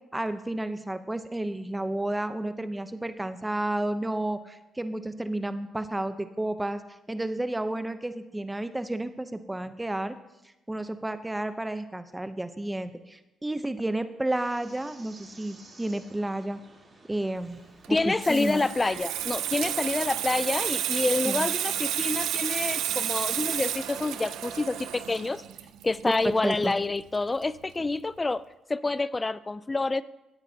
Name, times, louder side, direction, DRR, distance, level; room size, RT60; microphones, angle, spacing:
voice 1, 0.1-6.8 7.1-10.1 10.7-16.6 17.1-17.6 17.9-18.6 21.2-21.5 26.2-26.7, right 1 dB, 10° right, 10 dB, 0.7 m, -31 dB
sound 1, 14.3-24.0, right 2 dB, 30° right, 3.2 m, -53 dB
Water tap faucet / Sink (filling or washing), 17.8-27.2 27.4-27.7, right 11 dB, 90° right, 0.6 m, -31 dB
voice 2, 17.9-25.4 25.8-28.4 28.7-30.0, left 3 dB, 20° left, 17 dB, 0.3 m, -27 dB
16.5 x 8.9 x 2.8 m, 1.0 s
cardioid pair, 90°, 0 cm